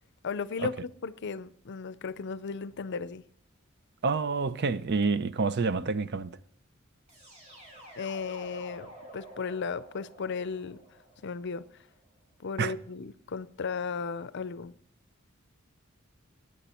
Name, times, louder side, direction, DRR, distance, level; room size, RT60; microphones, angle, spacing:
voice 1, 0.2-3.2 8.0-10.8 11.2-11.6 12.4-14.7, left 5 dB, 60° left, 0.5 m, -35 dB
voice 2, 4.0-6.4 12.6-12.7, right 4 dB, 55° right, 0.6 m, -28 dB
sound 1, 7.1-12.0, right 1 dB, 35° right, 6.3 m, -50 dB
15.5 x 9.6 x 4.3 m
head